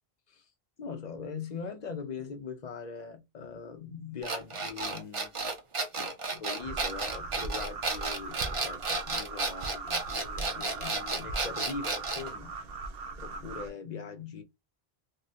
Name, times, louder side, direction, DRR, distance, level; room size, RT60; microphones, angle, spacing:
voice 1, 0.8-5.4 5.9-12.5 13.2-14.4, left 5 dB, 50° left, 0.7 m, -41 dB
sound 1, 4.2-12.3, right 3 dB, 35° right, 0.6 m, -32 dB
sound 2, 6.6-13.7, right 3 dB, 75° right, 0.8 m, -40 dB
3.6 x 2.1 x 2.7 m
omnidirectional pair, 1.0 m